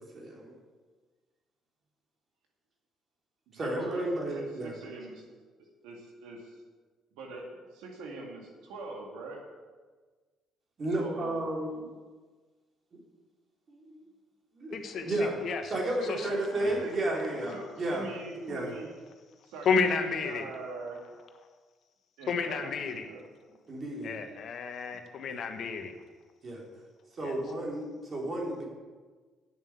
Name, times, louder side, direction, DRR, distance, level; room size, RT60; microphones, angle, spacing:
voice 1, 0.1-0.5 3.5-4.8 10.8-11.9 13.7-14.0 14.5-14.8 15.0-15.4 15.7-18.1 18.4-18.7 23.7-24.2 25.3-25.4 26.4-26.6 27.2-28.6, right 1 dB, 45° right, -1 dB, 3.4 m, -32 dB
voice 2, 3.5-5.3 5.8-6.6 7.1-7.5 7.7-9.4 11.0-11.4 16.0-17.1 17.5-19.0 19.4-21.0 22.2-23.2, right 2 dB, 80° right, 0 dB, 2.1 m, -42 dB
voice 3, 14.7-15.7 16.0-16.3 16.6-16.8 19.6-20.5 22.3-23.1 24.0-25.9 27.2-27.4, left 5 dB, 60° left, 6 dB, 1.2 m, -31 dB
8.9 x 7.2 x 8.1 m, 1.4 s
supercardioid pair, 60°, 0 cm